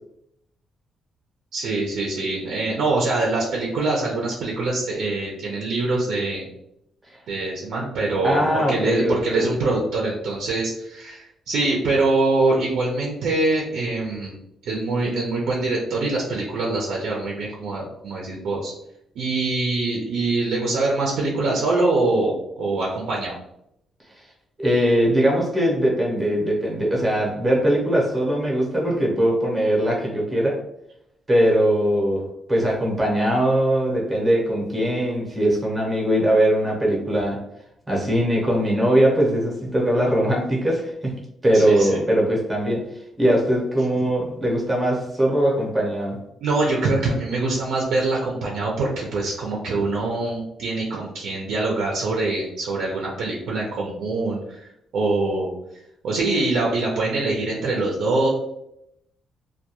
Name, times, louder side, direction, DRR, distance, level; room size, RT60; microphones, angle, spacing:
voice 1, 1.5-6.5 7.3-14.4 14.6-18.7 19.2-23.3 41.5-42.0 44.0-44.1 46.4-55.5 56.0-58.3, right 2 dB, 75° right, -2 dB, 0.5 m, -24 dB
voice 2, 8.2-9.5 24.6-30.6 31.3-37.4 37.9-41.1 41.4-42.9 43.2-46.2, right 1 dB, 15° right, -3 dB, 0.7 m, -21 dB
2.3 x 2.2 x 2.8 m, 0.79 s
cardioid pair, 145°, 0 cm